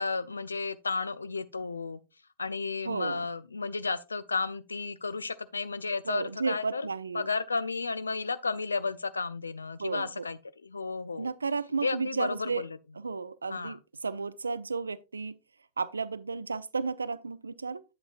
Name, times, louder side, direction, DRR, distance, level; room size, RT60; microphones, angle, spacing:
voice 1, 0.0-2.0 2.4-6.9 7.1-11.3 11.8-12.8 13.5-13.8, left 4 dB, 75° left, 0.5 m, -33 dB
voice 2, 2.8-3.3 6.1-7.3 9.8-10.2 11.2-12.7 13.0-15.4 15.8-17.8, right 4 dB, 75° right, 0.4 m, -33 dB
8.7 x 8.0 x 2.4 m
figure-of-eight pair, 90°, 0 cm